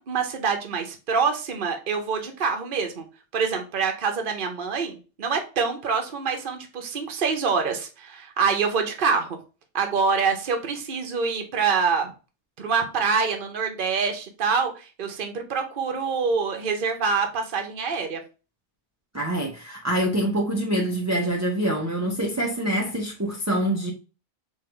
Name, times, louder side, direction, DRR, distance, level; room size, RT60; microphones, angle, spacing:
voice 1, 0.0-3.0 3.3-9.4 9.7-12.1 12.6-18.2, right 5 dB, 50° right, 1.0 m, -25 dB
voice 2, 19.1-23.9, right 1 dB, 15° right, 0.6 m, -25 dB
3.8 x 3.0 x 4.4 m
omnidirectional pair, 1.2 m